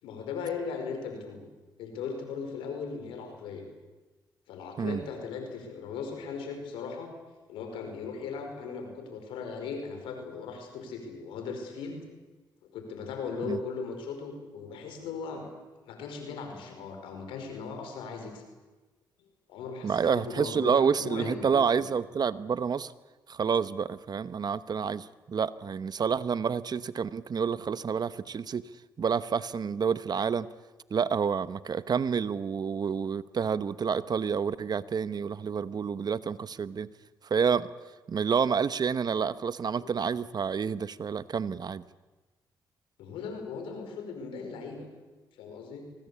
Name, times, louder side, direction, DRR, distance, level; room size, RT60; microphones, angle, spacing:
voice 1, 0.0-1.5 1.8-3.6 4.5-7.1 7.5-12.0 12.7-15.5 15.8-18.4 19.5-21.7 39.8-39.9 43.0-44.9 45.3-45.8, left 5 dB, 90° left, 5 dB, 5.0 m, -38 dB
voice 2, 19.8-22.9 23.3-28.6 29.0-30.5 30.9-36.9 37.2-37.7 38.1-41.8, right 6 dB, 50° right, 15 dB, 1.1 m, -29 dB
24.0 x 19.5 x 8.4 m, 1.2 s
supercardioid pair, 55°, 9 cm